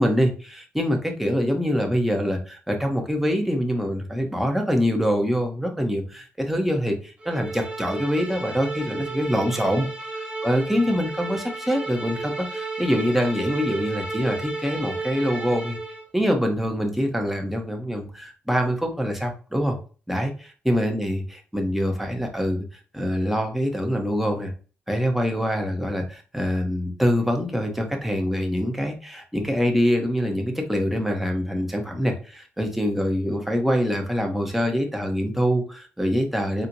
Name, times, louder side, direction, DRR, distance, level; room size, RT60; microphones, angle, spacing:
voice 1, 0.0-9.9 10.4-15.8 16.1-19.8 20.1-22.6 22.9-24.5 24.9-36.7, equal, 5° right, 3 dB, 0.9 m, -24 dB
sound 1, 7.2-16.1, right 3 dB, 20° right, 1.2 m, -33 dB
4.2 x 2.1 x 2.7 m, 0.37 s
cardioid pair, 80°, 5 cm